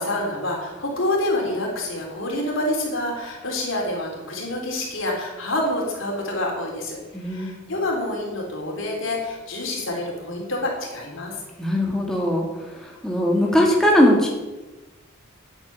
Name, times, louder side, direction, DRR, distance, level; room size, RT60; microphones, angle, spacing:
voice 1, 0.0-11.3, left 1 dB, 70° left, -1 dB, 3.6 m, -27 dB
voice 2, 7.1-7.6 11.6-12.5 13.0-14.3, equal, 5° left, -2 dB, 1.8 m, -19 dB
9.6 x 9.0 x 7.0 m, 1.1 s
head